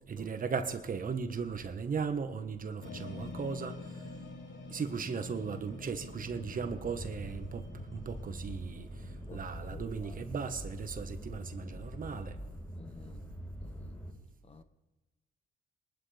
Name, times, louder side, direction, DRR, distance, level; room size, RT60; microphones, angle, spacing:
voice 1, 0.1-3.8 4.7-12.4, right 5 dB, 45° right, 1.4 m, -37 dB
sound 1, 2.8-12.5, left 2 dB, 65° left, 3.4 m, -48 dB
sound 2, 6.4-14.1, equal, 15° left, 4.6 m, -44 dB
voice 2, 9.3-10.2 12.8-13.2 13.6-14.0 14.4-14.6, left 3 dB, 30° left, 0.9 m, -52 dB
23.0 x 12.0 x 3.5 m
cardioid pair, 90°, 20 cm